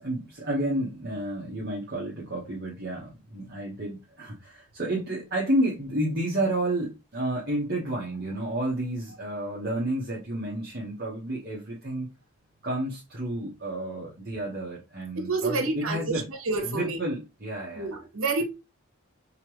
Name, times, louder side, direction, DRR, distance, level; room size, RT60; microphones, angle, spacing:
voice 1, 0.0-12.1 12.6-16.3 16.7-17.9, right 1 dB, 50° right, 1.3 m, -30 dB
voice 2, 15.1-17.0 17.7-18.4, right 3 dB, 80° right, 1.2 m, -29 dB
5.6 x 3.0 x 3.1 m
head